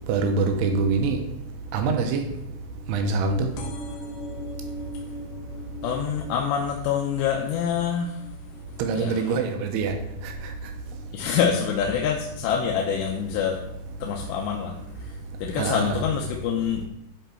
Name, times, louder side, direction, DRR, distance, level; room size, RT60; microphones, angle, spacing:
voice 1, 0.1-1.2 1.7-2.2 2.9-3.5 8.8-9.9 10.2-10.3 15.6-16.0, right 4 dB, 75° right, 5 dB, 2.8 m, -24 dB
sound 1, 3.6-10.8 11.3-11.7 12.6-12.7 12.9-13.0 13.2-13.3, equal, 75° left, 2.8 m, -42 dB
voice 2, 5.8-8.2 9.0-9.2 11.1-13.6 14.0-14.8 15.4-16.8, left 8 dB, 90° left, 0 dB, 2.9 m, -26 dB
10.5 x 4.5 x 4.4 m, 0.83 s
omnidirectional pair, 4.9 m